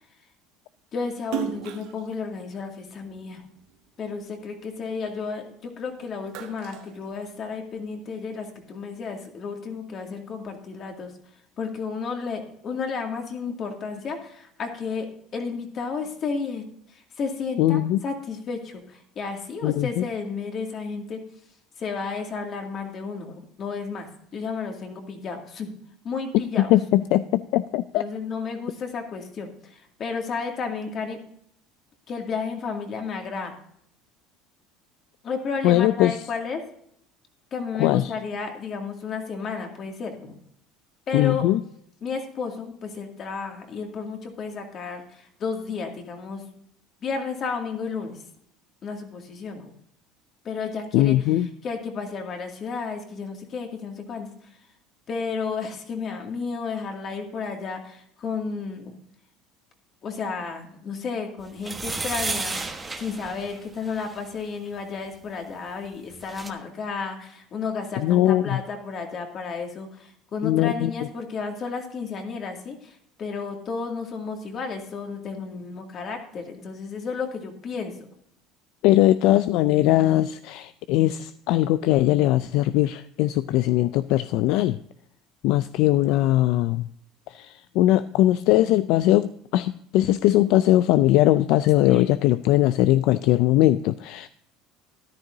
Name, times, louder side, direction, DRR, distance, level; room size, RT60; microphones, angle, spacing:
voice 1, 0.9-3.5 4.0-11.1 11.6-21.2 21.8-25.7 26.0-26.7 27.9-31.2 32.1-33.6 35.2-36.6 37.5-40.4 41.1-41.4 42.0-46.4 47.0-48.2 48.8-49.7 50.4-51.2 51.6-54.6 55.1-58.9 60.0-78.0 91.8-92.2, left 5 dB, 45° left, 3 dB, 2.3 m, -32 dB
Splash splatter, 1.2-3.8 4.2-5.7 6.0-7.8, right 13 dB, 75° right, 1.2 m, -36 dB
voice 2, 17.6-18.0 19.6-20.0 26.6-28.0 35.6-36.2 37.8-38.1 41.1-41.6 50.9-51.5 68.0-68.6 70.4-70.9 78.8-84.8 85.4-86.9 87.3-94.3, left 14 dB, 70° left, 14 dB, 0.3 m, -20 dB
sound 1, 61.6-64.2 65.8-65.9 66.1-66.5, right 3 dB, 15° right, 1.2 m, -32 dB
13.5 x 11.0 x 2.7 m, 0.68 s
supercardioid pair, 105°, 0 cm